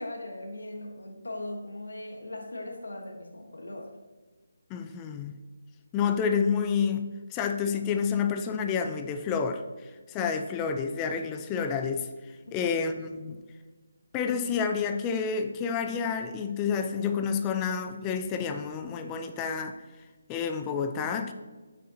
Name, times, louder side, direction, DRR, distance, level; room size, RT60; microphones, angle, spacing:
voice 1, 0.0-3.9 12.4-12.6, left 1 dB, 80° left, 2 dB, 1.2 m, -39 dB
voice 2, 4.7-5.3 5.9-12.1 12.5-13.4 14.1-19.7 20.3-21.3, left 6 dB, 20° left, 7 dB, 0.4 m, -29 dB
7.7 x 6.3 x 2.7 m, 1.3 s
figure-of-eight pair, 150°, 0 cm